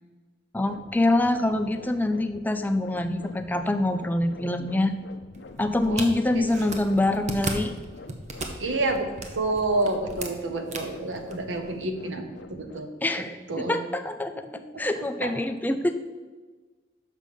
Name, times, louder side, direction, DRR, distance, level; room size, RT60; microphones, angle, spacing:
voice 1, 0.5-4.9 5.6-7.7 13.0-14.5 14.8-15.9, left 1 dB, 10° left, 8 dB, 0.4 m, -25 dB
sound 1, 0.6-12.8, left 3 dB, 65° left, 0.6 m, -46 dB
sound 2, 5.3-11.8, right 2 dB, 40° right, 0.8 m, -37 dB
voice 2, 8.6-9.1 9.3-12.2 12.5-12.9 13.5-13.8 15.0-15.3, right 2 dB, 85° right, 6 dB, 1.0 m, -28 dB
6.3 x 5.4 x 6.5 m, 1.4 s
head